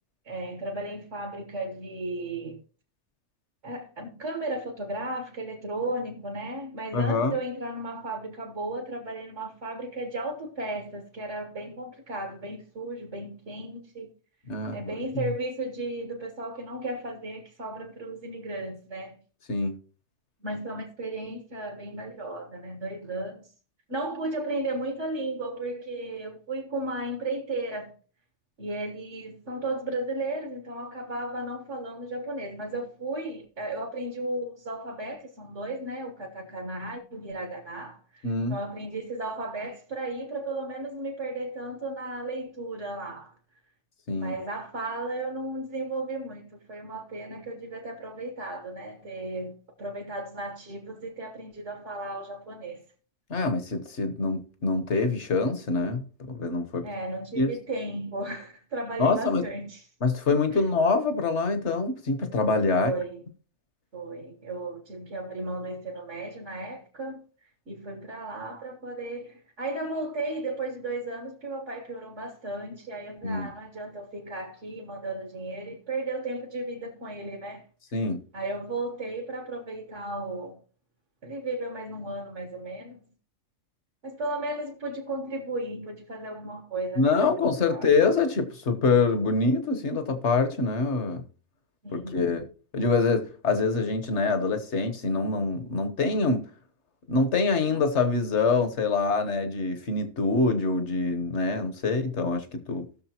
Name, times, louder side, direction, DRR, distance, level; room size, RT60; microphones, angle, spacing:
voice 1, 0.3-2.6 3.6-14.1 14.7-19.2 20.4-23.5 23.9-27.9 28.6-43.3 44.1-52.8 56.8-59.8 62.7-63.2 63.9-67.2 67.7-77.6 78.3-80.6 81.2-83.0 84.0-87.4 87.7-87.9 91.8-92.3, right 2 dB, 55° right, 1.8 m, -35 dB
voice 2, 6.9-7.3 14.5-14.8 19.5-19.8 38.2-38.6 44.1-44.4 53.3-56.9 57.3-57.5 59.0-59.4 60.0-62.9 73.2-73.5 77.9-78.2 87.0-91.2 91.9-92.5 92.7-96.4 97.1-102.9, left 3 dB, 55° left, 1.4 m, -25 dB
18.0 x 6.5 x 2.9 m
omnidirectional pair, 1.5 m